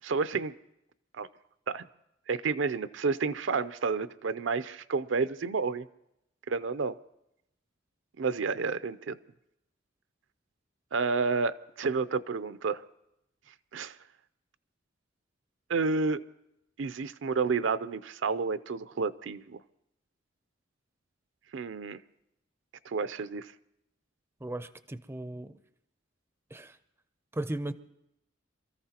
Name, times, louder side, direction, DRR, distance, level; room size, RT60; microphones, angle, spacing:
voice 1, 0.0-0.6 1.1-1.3 1.7-1.8 2.3-5.9 6.5-7.0 8.2-9.2 10.9-12.8 13.7-14.0 15.7-16.2 16.8-19.6 21.5-22.0 22.9-23.5, right 4 dB, 70° right, 0.5 m, -30 dB
voice 2, 24.4-25.5 26.5-26.8 27.3-27.7, right 1 dB, 15° right, 0.5 m, -36 dB
27.0 x 14.0 x 2.9 m
head